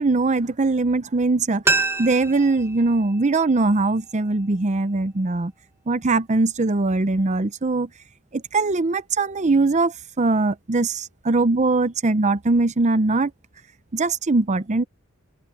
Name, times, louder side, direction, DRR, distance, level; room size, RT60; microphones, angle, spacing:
voice 1, 0.0-5.5 5.9-7.9 8.3-13.3 13.9-14.8, right 3 dB, 35° right, 0.7 m, -21 dB
sound 1, 1.6-4.4 4.7-4.8, right 3 dB, 10° right, 1.1 m, -28 dB
head